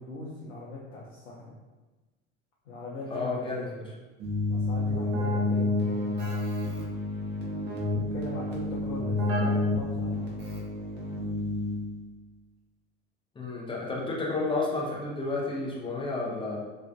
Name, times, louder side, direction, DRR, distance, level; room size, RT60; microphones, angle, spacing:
voice 1, 0.0-1.6 2.7-4.0 4.5-6.3 7.9-10.3, left 2 dB, 80° left, -4 dB, 0.5 m, -40 dB
voice 2, 3.1-3.6 13.4-16.6, left 3 dB, 15° left, -4 dB, 0.5 m, -31 dB
Keyboard (musical), 4.2-12.1, left 2 dB, 25° right, 0.7 m, -29 dB
2.4 x 2.4 x 2.2 m, 1.2 s
figure-of-eight pair, 70°, 39 cm